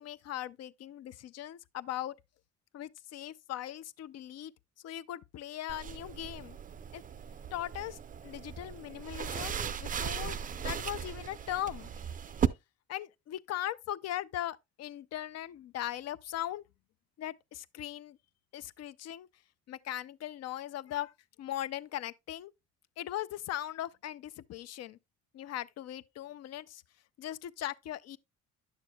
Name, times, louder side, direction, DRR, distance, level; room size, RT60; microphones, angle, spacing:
voice 1, 0.0-2.1 2.7-4.5 4.8-6.6 6.9-7.0 7.5-8.0 8.2-11.9 12.9-16.6 17.2-18.2 18.5-19.3 19.7-21.1 21.4-22.5 23.0-25.0 25.3-26.8 27.2-28.2, left 12 dB, 55° left, 0.4 m, -39 dB
sound 1, 5.7-12.5, right 8 dB, 30° right, 0.4 m, -37 dB
9.8 x 6.6 x 2.2 m
cardioid pair, 90°, 30 cm